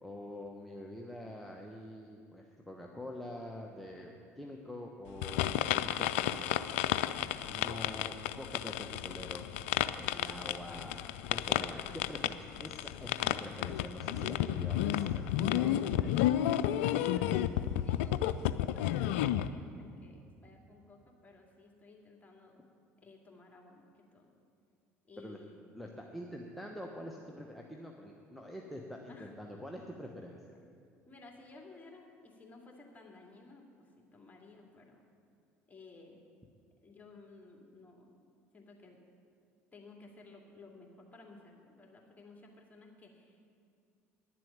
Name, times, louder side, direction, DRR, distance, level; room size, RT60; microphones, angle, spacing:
voice 1, 0.0-6.6 7.5-9.4 10.0-16.4 25.2-25.4 25.7-30.6, left 1 dB, ahead, 0 dB, 1.1 m, -46 dB
sound 1, 5.2-19.5, left 12 dB, 75° left, 0.4 m, -32 dB
voice 2, 17.1-22.6 23.0-24.3 25.1-25.6 29.1-29.3 31.1-35.0 35.7-36.2 36.8-38.1 38.5-39.0 39.7-43.4, left 3 dB, 20° left, 0 dB, 2.5 m, -56 dB
10.5 x 7.6 x 8.8 m, 2.4 s
hypercardioid pair, 65°, 7 cm